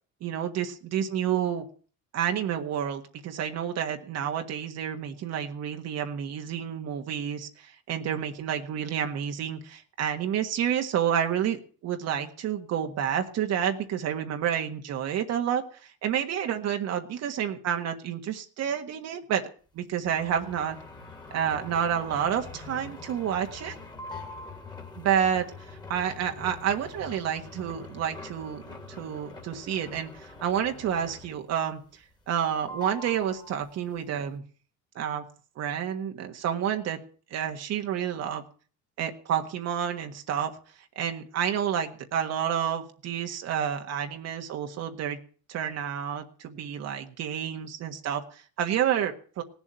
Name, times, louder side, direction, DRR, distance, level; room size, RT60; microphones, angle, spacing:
voice 1, 0.2-1.6 2.1-19.5 19.7-20.8 21.3-23.8 24.9-32.0 32.3-34.4 34.9-35.2 35.6-37.0 37.3-38.4 39.0-40.6 40.9-45.2 45.5-49.4, right 9 dB, 50° right, 5 dB, 1.6 m, -29 dB
sound 1, 20.0-31.5 31.9-32.4 32.7-34.0, left 3 dB, 15° left, 2.3 m, -44 dB
18.0 x 7.3 x 9.0 m, 0.43 s
cardioid pair, 150°, 32 cm